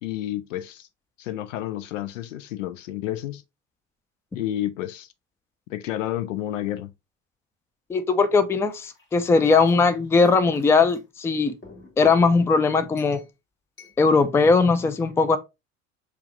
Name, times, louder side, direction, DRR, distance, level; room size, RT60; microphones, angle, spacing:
voice 1, 0.0-0.9 1.2-3.4 4.3-5.1 5.7-6.9, left 13 dB, 70° left, 0.6 m, -30 dB
voice 2, 7.9-11.5 12.0-13.2 14.0-15.4, left 4 dB, 5° left, 0.4 m, -19 dB
sound 1, 8.7-11.0 11.6-12.3 13.0-13.3 13.8-14.0, left 1 dB, 30° left, 1.6 m, -42 dB
6.8 x 2.3 x 2.5 m
figure-of-eight pair, 65°, 39 cm